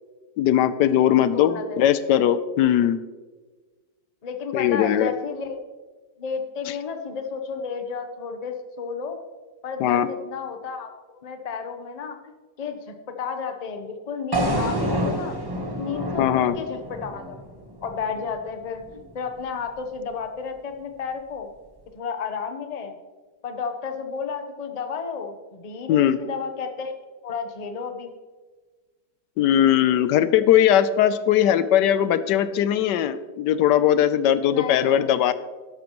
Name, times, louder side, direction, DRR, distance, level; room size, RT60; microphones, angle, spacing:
voice 1, 0.4-3.0 4.5-5.1 9.8-10.1 16.2-16.5 25.9-26.2 29.4-35.3, left 10 dB, 80° left, 14 dB, 1.2 m, -19 dB
voice 2, 1.1-1.8 4.2-5.6 6.2-9.2 9.6-10.9 11.2-15.4 15.7-17.4 17.8-21.5 21.9-23.0 23.4-27.0 27.2-28.1 34.5-35.1, left 6 dB, 30° left, 6 dB, 0.7 m, -32 dB
sound 1, 14.3-18.4, right 1 dB, 15° right, 0.9 m, -28 dB
12.0 x 11.5 x 3.0 m, 1.4 s
omnidirectional pair, 1.8 m